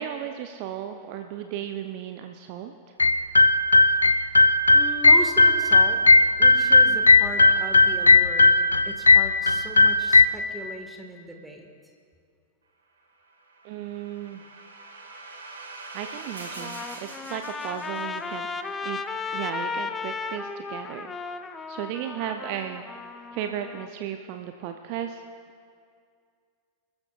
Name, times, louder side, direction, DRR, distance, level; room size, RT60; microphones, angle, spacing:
voice 1, 0.0-2.7 13.6-14.4 15.9-18.5 18.8-19.0 19.3-21.1 21.7-22.8 23.3-25.2, right 10 dB, 45° right, 6 dB, 0.7 m, -35 dB
sound 1, 3.0-10.3, left 3 dB, 80° left, 0.4 m, -17 dB
voice 2, 4.7-6.0 6.4-8.6 8.9-11.7, right 1 dB, 5° right, 2 dB, 1.7 m, -37 dB
sound 2, 13.3-18.5, right 3 dB, 70° right, 2.2 m, -43 dB
Trumpet, 16.4-23.9, left 4 dB, 15° left, 0.7 m, -35 dB
28.0 x 13.5 x 2.5 m, 2.2 s
figure-of-eight pair, 90°, 0 cm